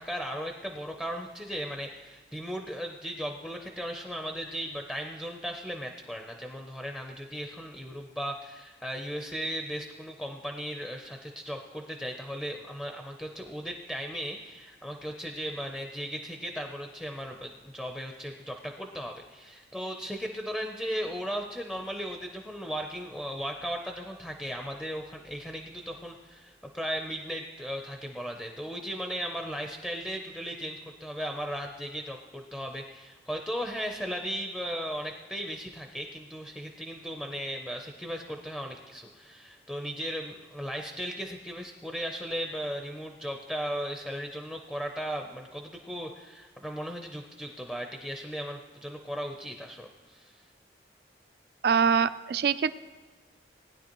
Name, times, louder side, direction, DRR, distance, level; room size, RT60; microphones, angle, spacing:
voice 1, 0.0-50.4, equal, 5° left, 3 dB, 0.5 m, -36 dB
voice 2, 51.6-52.7, right 6 dB, 60° right, 14 dB, 0.4 m, -24 dB
19.0 x 9.9 x 3.0 m, 1.4 s
head